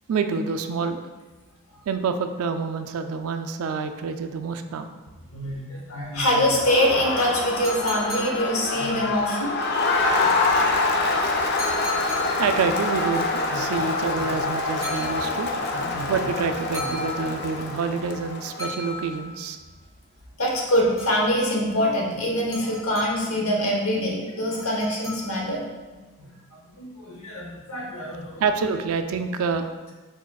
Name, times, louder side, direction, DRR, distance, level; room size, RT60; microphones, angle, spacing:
voice 1, 0.1-1.0 1.9-4.9 12.4-15.5 16.1-19.6 28.4-29.7, right 5 dB, 70° right, 8 dB, 0.3 m, -27 dB
voice 2, 5.3-9.6 11.9-12.2 13.5-13.6 14.2-14.3 15.5-16.1 16.8-16.9 20.4-26.3 26.8-28.4, equal, 70° left, -1 dB, 0.9 m, -25 dB
Crowd, 6.4-19.0, left 3 dB, 45° left, 0.4 m, -26 dB
sound 1, 7.6-9.1 11.6-12.7 14.8-15.7 16.7-17.8 18.6-19.6 20.5-21.5 22.5-23.4 24.6-25.7, left 1 dB, 15° left, 0.8 m, -37 dB
4.7 x 4.2 x 2.3 m, 1.3 s
head